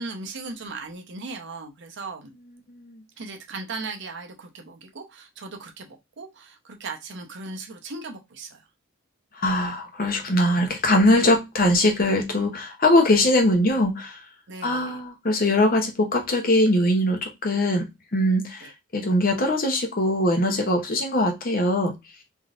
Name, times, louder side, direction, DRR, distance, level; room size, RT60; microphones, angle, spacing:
voice 1, 0.0-2.3 3.2-8.6 14.5-15.0 18.6-18.7, right 3 dB, 60° right, 0.7 m, -37 dB
voice 2, 2.7-3.0 9.4-14.2 14.6-21.9, left 1 dB, 45° left, 0.8 m, -22 dB
3.5 x 2.7 x 2.4 m
head